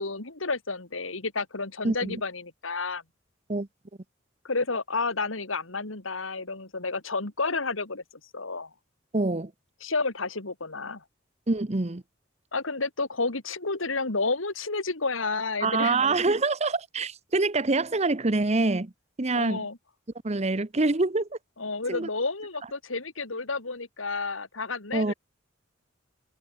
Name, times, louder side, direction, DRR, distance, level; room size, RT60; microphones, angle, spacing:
voice 1, 0.0-3.0 4.4-8.0 8.3-8.7 9.8-11.0 12.5-16.0 19.3-19.8 21.6-25.1, left 3 dB, 85° left, 2.9 m, -31 dB
voice 2, 1.8-2.2 3.5-3.7 9.1-9.5 11.5-12.0 15.6-18.9 19.2-19.7 20.2-21.4 21.9-22.1 24.9-25.1, right 3 dB, 35° right, 0.9 m, -25 dB
head